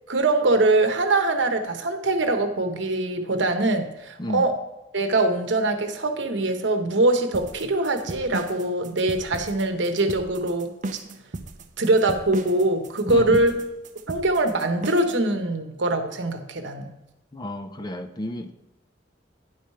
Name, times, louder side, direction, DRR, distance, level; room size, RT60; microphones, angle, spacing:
voice 1, 0.1-4.5 4.9-10.7 11.8-13.5 14.1-16.9, right 2 dB, 70° right, 6 dB, 1.0 m, -23 dB
voice 2, 4.2-4.5 13.1-13.4 17.3-18.5, left 1 dB, 25° left, 8 dB, 0.5 m, -31 dB
sound 1, 7.3-15.2, right 2 dB, 40° right, 0.6 m, -35 dB
10.0 x 4.8 x 5.5 m, 0.98 s
head